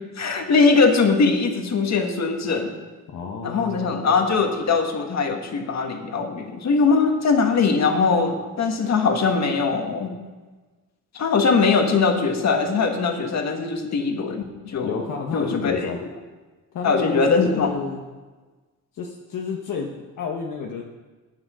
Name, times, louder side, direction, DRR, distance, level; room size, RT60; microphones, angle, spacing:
voice 1, 0.2-2.7 3.4-10.1 11.1-15.0 15.3-15.9 16.8-17.7, left 4 dB, 50° left, 4 dB, 1.7 m, -21 dB
voice 2, 3.1-4.0 14.8-16.0 16.7-18.0 18.9-20.8, left 5 dB, 65° left, 0 dB, 1.2 m, -30 dB
11.5 x 9.2 x 6.3 m, 1.3 s
cardioid pair, 145°, 34 cm